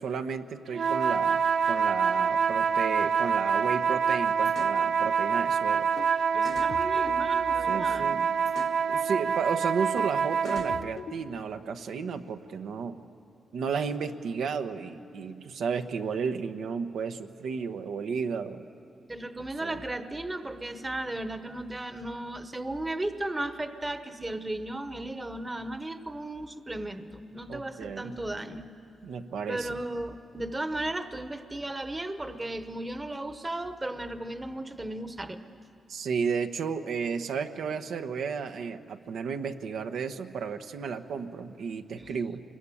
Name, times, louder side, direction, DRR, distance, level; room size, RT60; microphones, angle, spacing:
voice 1, 0.0-5.9 7.7-8.3 8.9-13.0 13.5-18.6 19.6-19.7 27.5-28.1 29.0-29.8 35.9-42.4, right 6 dB, 90° right, 7 dB, 1.1 m, -33 dB
sound 1, 0.7-10.9, right 6 dB, 60° right, 0.7 m, -26 dB
sound 2, 4.4-4.8 6.0-6.1 6.4-7.9 8.5-8.8 10.0-10.1 10.4-11.5, left 6 dB, 60° left, 1.0 m, -42 dB
voice 2, 6.3-8.1 19.1-28.7 29.5-35.4 42.0-42.1, right 1 dB, 15° right, 9 dB, 0.9 m, -35 dB
26.5 x 22.5 x 9.9 m, 2.6 s
wide cardioid pair, 170°, 0 cm